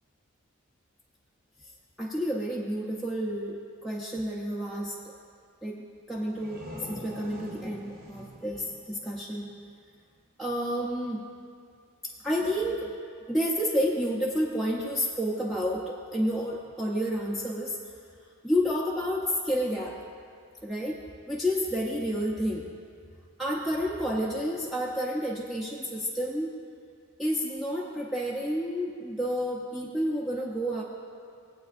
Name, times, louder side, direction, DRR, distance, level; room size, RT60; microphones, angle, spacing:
voice 1, 2.0-5.0 5.6-9.5 10.4-11.2 12.0-12.9 13.3-17.8 18.4-20.0 20.6-21.0 21.3-22.7 23.4-26.6 27.2-30.8, equal, ahead, -6 dB, 0.6 m, -30 dB
sound 1, 6.1-9.7, left 1 dB, 45° right, 2.0 m, -45 dB
18.5 x 8.3 x 2.5 m, 2.2 s
head